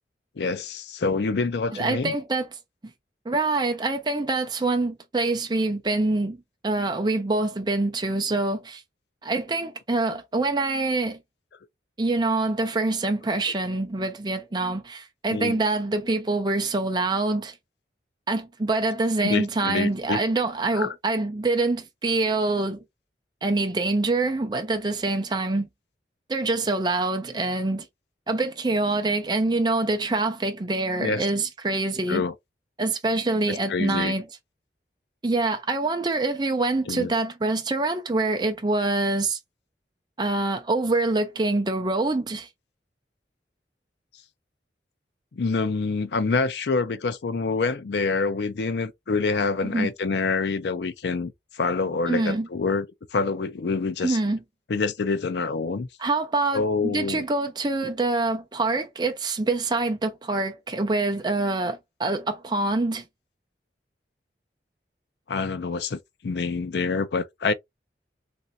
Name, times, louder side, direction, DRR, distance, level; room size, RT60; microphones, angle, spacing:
voice 1, 0.4-2.1 15.3-15.6 19.2-20.2 20.7-20.9 31.0-31.3 32.1-32.3 33.7-34.1 36.9-37.1 45.3-52.9 53.1-54.2 54.7-55.9 56.5-57.2 65.3-67.5, left 4 dB, 70° left, 0.5 m, -26 dB
voice 2, 1.7-2.5 3.3-6.4 6.6-8.8 9.2-11.2 12.0-17.6 18.3-22.8 23.4-25.7 26.3-27.9 28.3-32.2 32.8-34.2 35.2-39.4 40.2-42.5 49.7-49.9 52.1-52.5 54.0-54.4 56.0-63.0, right 2 dB, 25° right, 0.5 m, -25 dB
3.2 x 2.6 x 2.7 m
head